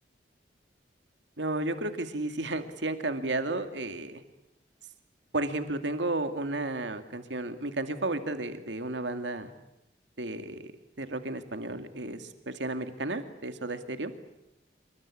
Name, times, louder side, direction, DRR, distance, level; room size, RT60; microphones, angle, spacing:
voice 1, 1.4-4.2 5.3-9.5 10.2-10.7 11.0-14.1, right 2 dB, 90° right, 8 dB, 2.3 m, -33 dB
27.0 x 24.0 x 8.6 m, 0.90 s
head